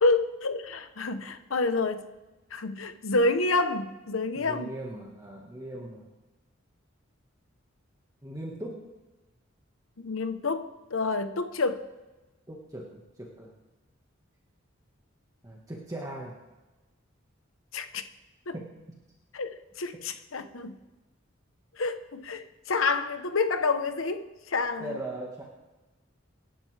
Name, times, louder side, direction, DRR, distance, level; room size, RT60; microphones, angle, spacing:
voice 1, 0.0-2.0 2.5-4.7 10.0-11.8 17.7-18.0 18.5-18.6 19.3-20.7 21.8-24.2 24.5-24.9, left 3 dB, 80° left, 1.0 m, -28 dB
voice 2, 4.3-6.1 8.2-8.9 12.5-13.5 15.4-16.4 18.5-19.0 24.8-25.4, right 1 dB, 15° right, 1.6 m, -39 dB
25.5 x 11.0 x 3.4 m
head